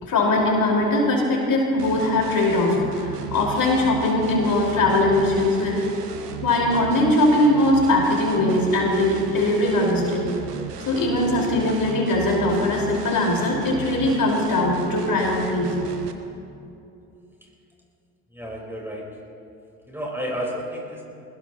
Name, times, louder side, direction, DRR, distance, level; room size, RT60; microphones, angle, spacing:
voice 1, 0.0-5.8 6.4-10.2 10.8-15.7, left 1 dB, 45° left, -2 dB, 4.7 m, -21 dB
sound 1, 1.8-16.1, right 6 dB, 90° right, 1.0 m, -35 dB
voice 2, 18.3-19.1 19.9-21.0, equal, 5° right, -2 dB, 4.3 m, -31 dB
23.0 x 20.0 x 3.0 m, 2.7 s
hypercardioid pair, 60°, 45 cm